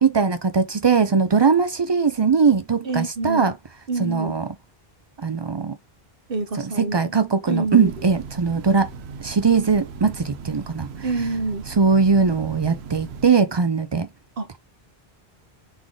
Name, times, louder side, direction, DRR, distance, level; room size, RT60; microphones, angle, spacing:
voice 1, 0.0-3.5 4.0-4.5 5.2-5.8 6.6-8.9 9.2-10.9 11.7-14.1, right 5 dB, 45° right, 0.3 m, -20 dB
voice 2, 2.8-3.5 3.9-4.3 6.3-7.1 7.5-7.9 11.0-11.6 14.4-14.6, right 3 dB, 65° right, 1.1 m, -26 dB
Train, 7.6-13.3, right 6 dB, 90° right, 0.9 m, -38 dB
3.5 x 3.4 x 3.7 m
omnidirectional pair, 1.0 m